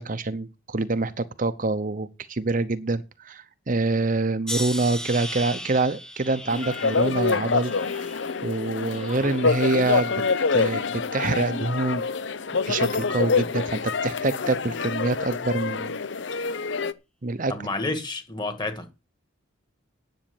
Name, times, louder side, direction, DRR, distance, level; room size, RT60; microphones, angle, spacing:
voice 1, 0.0-7.7 8.4-10.1 10.5-12.0 12.7-15.9 17.2-17.5, right 3 dB, 40° right, 0.8 m, -26 dB
sound 1, 4.5-9.6 10.1-10.8 11.5-11.8, equal, 5° left, 1.0 m, -38 dB
sound 2, 6.5-16.9, left 4 dB, 60° left, 0.7 m, -26 dB
voice 2, 17.5-18.9, left 2 dB, 20° left, 1.9 m, -30 dB
10.5 x 7.8 x 7.1 m
head